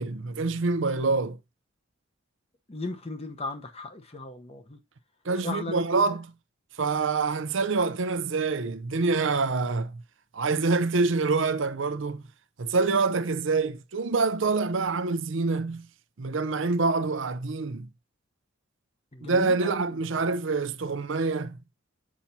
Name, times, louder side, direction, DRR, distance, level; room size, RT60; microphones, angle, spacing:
voice 1, 0.0-1.4 5.2-6.3 6.8-10.0 10.3-12.2 12.6-15.9 16.2-17.9 19.2-21.6, right 4 dB, 70° right, 0.6 m, -26 dB
voice 2, 2.7-4.8 5.4-5.8 19.1-20.0, left 2 dB, 30° left, 0.9 m, -37 dB
7.3 x 5.8 x 2.7 m
head